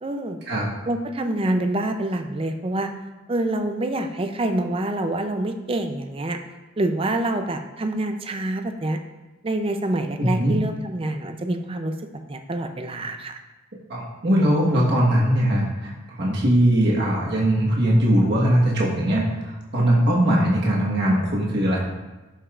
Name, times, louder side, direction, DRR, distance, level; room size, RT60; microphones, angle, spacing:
voice 1, 0.0-0.4 0.9-2.9 3.3-6.4 6.8-9.0 9.4-11.9 12.3-13.4, right 1 dB, 25° right, 6 dB, 0.5 m, -26 dB
voice 2, 10.2-10.5 13.9-15.9 16.2-19.2 19.7-21.8, right 1 dB, 55° right, -4 dB, 1.3 m, -20 dB
12.0 x 5.5 x 2.4 m, 1.1 s
head